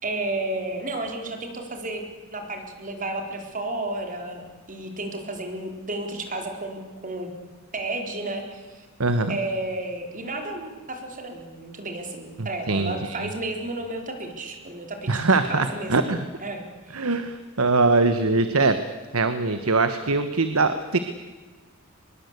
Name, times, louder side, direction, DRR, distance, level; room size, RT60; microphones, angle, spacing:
voice 1, 0.0-2.0 2.3-7.3 7.7-8.9 9.3-15.9 16.4-17.2, right 2 dB, 40° right, 4 dB, 4.0 m, -32 dB
voice 2, 9.0-9.4 12.4-13.3 15.1-16.2 16.9-18.8 19.1-21.0, right 3 dB, 90° right, 10 dB, 1.3 m, -22 dB
24.0 x 21.5 x 8.2 m, 1.3 s
head